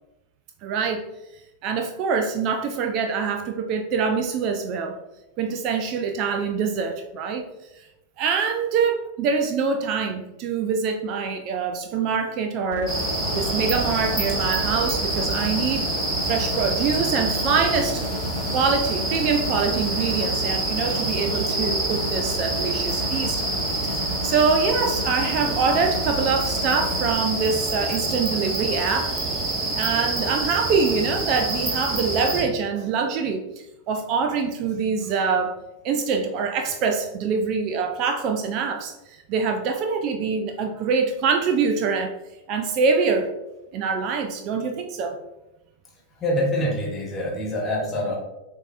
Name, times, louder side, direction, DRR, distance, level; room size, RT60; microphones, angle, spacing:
voice 1, 0.6-1.0 1.6-5.0 5.4-7.4 8.2-13.0 13.3-15.9 16.2-18.0 18.5-23.4 23.8-29.1 29.7-33.4 33.9-35.6 35.8-42.2 42.5-43.3 43.7-45.2, right 5 dB, 40° right, 6 dB, 0.4 m, -24 dB
sound 1, 12.7-27.2, left 2 dB, 55° left, 0.4 m, -33 dB
sound 2, 12.9-32.4, right 2 dB, 20° right, 1.5 m, -27 dB
voice 2, 46.1-48.2, left 1 dB, 25° left, -2 dB, 1.3 m, -25 dB
6.9 x 2.7 x 2.4 m, 0.97 s
figure-of-eight pair, 90°, 0 cm